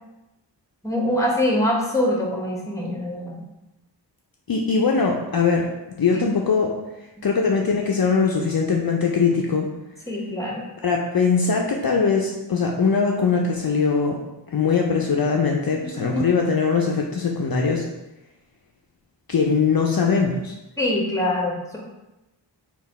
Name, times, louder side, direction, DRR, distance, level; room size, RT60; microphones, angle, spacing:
voice 1, 0.8-3.4 6.1-6.2 10.1-10.6 15.9-16.3 20.8-21.8, left 1 dB, 5° left, -2 dB, 1.0 m, -24 dB
voice 2, 4.5-5.7 6.0-6.8 7.2-9.7 10.8-14.2 14.5-17.8 19.3-20.5, left 5 dB, 55° left, 0 dB, 0.5 m, -21 dB
3.9 x 2.3 x 4.1 m, 0.97 s
wide cardioid pair, 45°, 43 cm